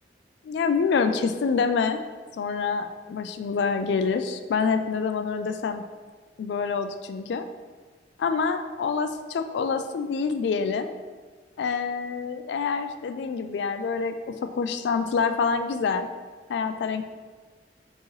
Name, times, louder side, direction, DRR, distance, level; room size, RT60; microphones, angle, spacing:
voice 1, 0.4-2.0 2.4-5.8 6.4-7.4 8.2-10.9 11.6-14.2 14.5-16.1 16.5-17.1, left 5 dB, 75° left, 8 dB, 0.3 m, -26 dB
4.5 x 2.9 x 3.0 m, 1.4 s
head